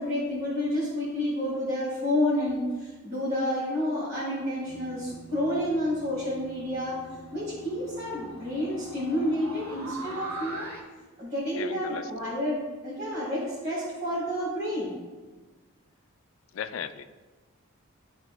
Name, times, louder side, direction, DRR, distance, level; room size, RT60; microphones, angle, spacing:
voice 1, 0.0-7.0 7.3-10.7 11.2-14.9, left 1 dB, 40° right, -9 dB, 1.9 m, -29 dB
sound 1, 4.7-10.8, right 2 dB, 90° right, 1.7 m, -43 dB
voice 2, 11.5-12.1 16.5-17.0, left 8 dB, 60° left, 10 dB, 0.3 m, -36 dB
12.5 x 4.2 x 2.2 m, 1.3 s
head